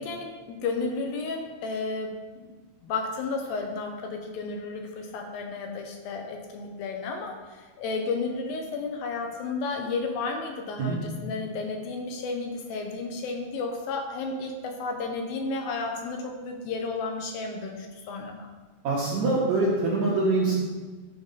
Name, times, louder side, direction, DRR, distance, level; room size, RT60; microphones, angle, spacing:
voice 1, 0.0-2.5 2.8-18.5, left 3 dB, 75° left, 3 dB, 2.4 m, -32 dB
voice 2, 18.8-20.6, right 3 dB, 70° right, -5 dB, 1.8 m, -24 dB
10.5 x 4.6 x 4.0 m, 1.3 s
omnidirectional pair, 4.5 m